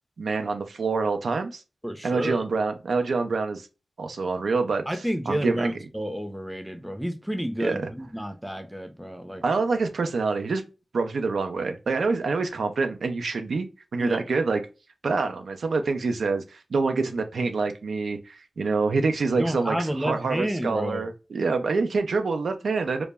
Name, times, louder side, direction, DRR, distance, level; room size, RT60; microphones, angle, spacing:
voice 1, 0.2-1.6 2.0-3.7 4.0-4.8 5.3-5.7 7.6-7.9 9.4-10.6 10.9-13.7 13.9-14.6 15.0-23.1, right 4 dB, 80° right, 0.3 m, -26 dB
voice 2, 1.8-2.4 4.9-9.4 14.0-14.2 19.4-21.1, equal, 5° right, 0.5 m, -30 dB
2.1 x 2.0 x 3.3 m
wide cardioid pair, 65°, 0 cm